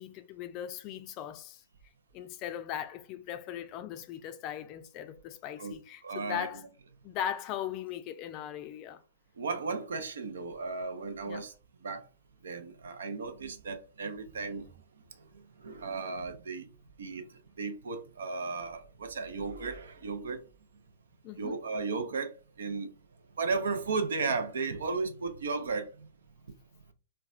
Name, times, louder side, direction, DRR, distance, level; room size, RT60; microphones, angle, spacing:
voice 1, 0.0-1.6 2.1-6.6 7.0-9.0 11.3-11.4 21.2-21.6, left 10 dB, 40° left, 0.4 m, -39 dB
voice 2, 6.0-6.5 9.4-11.5 11.8-12.1 12.4-14.7 15.2-15.3 15.6-16.7 17.0-17.3 17.6-20.4 21.4-22.9 23.4-26.1, right 4 dB, 75° right, 0.5 m, -35 dB
4.0 x 2.2 x 2.4 m
hypercardioid pair, 120°, 0 cm